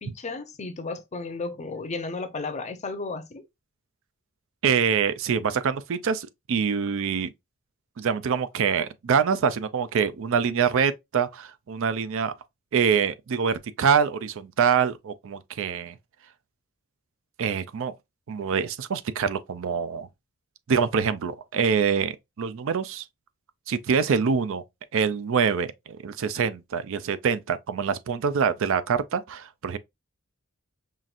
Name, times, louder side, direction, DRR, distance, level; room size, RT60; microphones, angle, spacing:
voice 1, 0.0-3.4, left 3 dB, 35° left, 0.6 m, -34 dB
voice 2, 4.6-7.3 8.0-12.3 12.7-15.9 17.4-17.9 18.3-20.1 20.7-23.0 23.7-24.6 24.9-29.8, right 6 dB, 65° right, 0.4 m, -25 dB
5.6 x 2.5 x 2.4 m
head